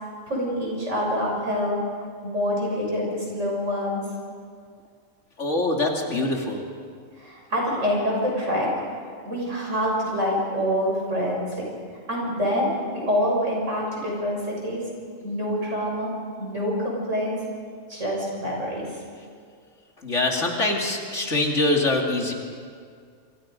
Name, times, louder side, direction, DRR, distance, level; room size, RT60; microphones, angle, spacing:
voice 1, 0.3-1.8 2.2-4.0 7.2-8.7 9.2-11.7 12.1-14.8 15.2-16.1 16.4-17.4 17.9-18.9, equal, 60° right, -3 dB, 6.7 m, -26 dB
voice 2, 5.4-6.6 20.0-22.3, left 2 dB, 60° left, 1 dB, 2.9 m, -24 dB
28.0 x 24.5 x 5.2 m, 2.1 s
omnidirectional pair, 1.4 m